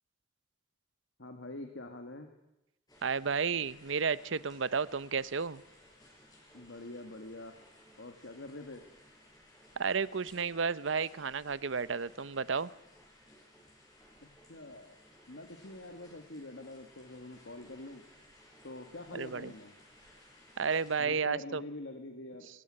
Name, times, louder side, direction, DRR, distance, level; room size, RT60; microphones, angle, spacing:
voice 1, 1.2-2.3 6.5-7.6 8.0-8.8 14.5-15.0 15.3-18.0 18.6-19.7 21.0-22.5, left 2 dB, 75° left, 6 dB, 1.9 m, -45 dB
sound 1, 2.9-21.0, left 1 dB, 20° left, 6.6 m, -59 dB
voice 2, 3.0-5.6 9.8-12.7 19.1-19.5 20.6-21.6, right 5 dB, 80° right, 18 dB, 0.8 m, -32 dB
22.5 x 16.5 x 9.9 m, 0.92 s
head